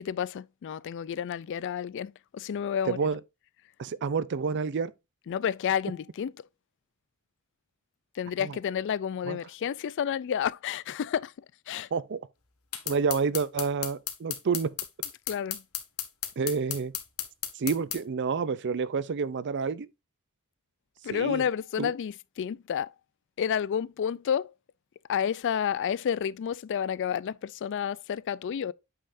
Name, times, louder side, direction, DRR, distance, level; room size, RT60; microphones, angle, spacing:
voice 1, 0.0-3.0 5.3-6.3 8.1-11.3 11.7-11.9 15.3-15.6 21.0-22.9 23.4-24.5 25.1-28.7, left 8 dB, 55° left, 0.3 m, -30 dB
voice 2, 2.9-3.2 3.8-4.9 8.4-8.5 9.3-9.4 11.9-12.2 12.9-14.7 16.4-16.9 17.6-19.9 21.1-21.4 21.8-21.9, right 5 dB, 55° right, 0.5 m, -29 dB
sound 1, 12.7-18.0, left 11 dB, 85° left, 1.5 m, -34 dB
8.5 x 5.6 x 2.6 m
head